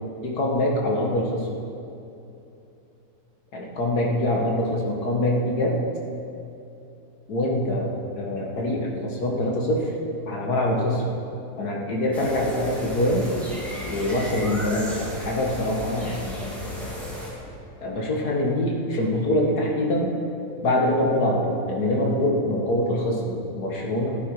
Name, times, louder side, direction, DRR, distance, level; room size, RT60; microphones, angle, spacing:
voice 1, 0.2-1.5 3.5-5.8 7.3-9.9 10.3-11.1 11.6-13.3 13.8-16.7 17.8-20.1 20.6-24.1, left 1 dB, 85° left, -1 dB, 2.3 m, -24 dB
sound 1, 12.1-17.3, left 1 dB, ahead, 3.0 m, -35 dB
16.0 x 10.0 x 4.9 m, 2.8 s
omnidirectional pair, 1.6 m